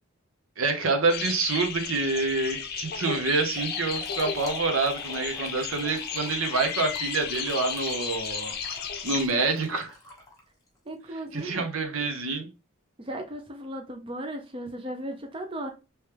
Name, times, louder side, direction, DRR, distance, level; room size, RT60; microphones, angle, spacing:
voice 1, 0.6-8.5 9.0-9.9 11.3-12.5, right 3 dB, 75° right, 0.9 m, -27 dB
sound 1, 1.1-9.3, left 7 dB, 45° left, 0.6 m, -34 dB
Trickle dribble / Fill (with liquid), 3.5-10.8, left 2 dB, 15° left, 1.2 m, -46 dB
voice 2, 10.9-11.7 13.0-15.7, right 1 dB, 25° right, 0.5 m, -36 dB
3.2 x 3.1 x 3.2 m
head